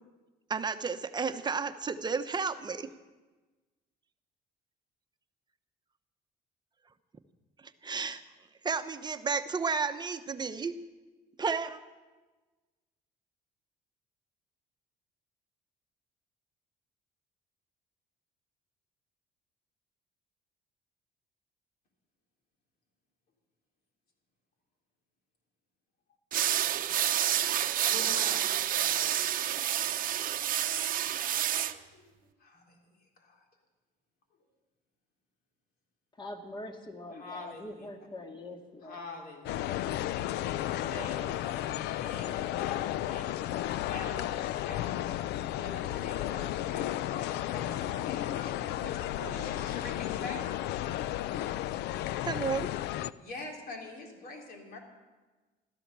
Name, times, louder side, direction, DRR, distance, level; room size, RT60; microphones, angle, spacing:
voice 1, 0.5-2.9 7.8-8.2 8.6-10.8 11.4-11.8 52.2-52.7, right 5 dB, 25° right, 9 dB, 0.9 m, -32 dB
sound 1, 26.3-31.7, right 11 dB, 55° right, 0.8 m, -29 dB
voice 2, 26.9-27.4 27.9-29.2 29.8-30.1 31.7-33.5 37.1-37.9 38.8-40.0 40.6-45.2 45.5-50.4 53.2-54.8, left 2 dB, 60° left, 1 dB, 3.7 m, -45 dB
voice 3, 36.2-39.0, left 1 dB, 25° left, 4 dB, 2.1 m, -43 dB
sound 2, 39.4-53.1, left 13 dB, 80° left, 0.5 m, -33 dB
15.5 x 13.0 x 6.8 m, 1.2 s
cardioid pair, 110°, 17 cm